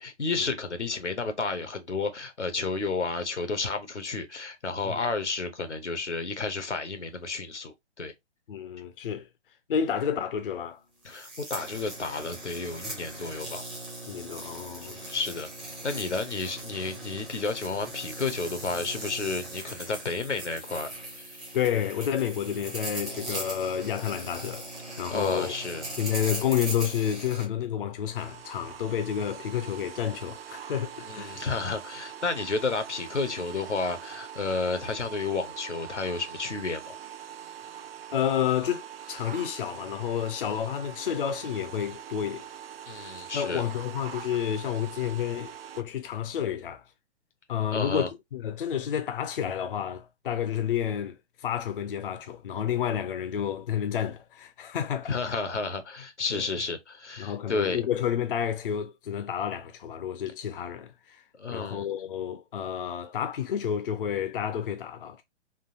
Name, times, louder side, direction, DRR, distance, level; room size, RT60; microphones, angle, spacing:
voice 1, 0.0-8.1 11.0-13.6 14.8-15.5 15.8-20.9 21.2-21.4 24.9-25.8 31.1-37.0 42.9-43.6 47.7-48.1 55.1-57.8 61.4-61.9, left 4 dB, 85° left, 0.9 m, -31 dB
voice 2, 8.5-9.3 9.7-10.8 14.1-15.1 21.5-25.5 26.0-31.4 38.1-42.5 42.9-46.8 47.5-55.2 56.3-56.5 57.2-61.2 61.5-65.2, left 9 dB, 50° left, 0.5 m, -30 dB
sound 1, 11.0-27.4, right 1 dB, 5° right, 0.4 m, -39 dB
sound 2, 28.2-45.8, right 9 dB, 55° right, 0.5 m, -43 dB
3.7 x 2.4 x 2.8 m
figure-of-eight pair, 130°, 34 cm